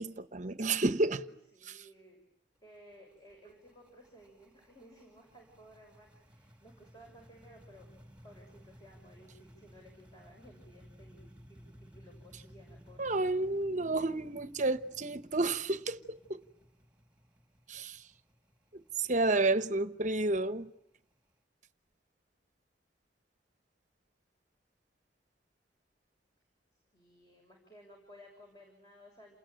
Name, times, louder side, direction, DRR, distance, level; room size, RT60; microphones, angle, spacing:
voice 1, 0.0-1.2 1.7-1.8 13.0-16.4 17.7-18.0 18.7-20.7, right 2 dB, 45° right, 1.1 m, -31 dB
voice 2, 1.1-2.2 2.6-7.9 8.2-13.5 26.9-29.4, equal, 20° left, 6.8 m, -57 dB
sound 1, 2.6-21.3, equal, 5° right, 3.1 m, -58 dB
29.0 x 21.0 x 9.1 m
head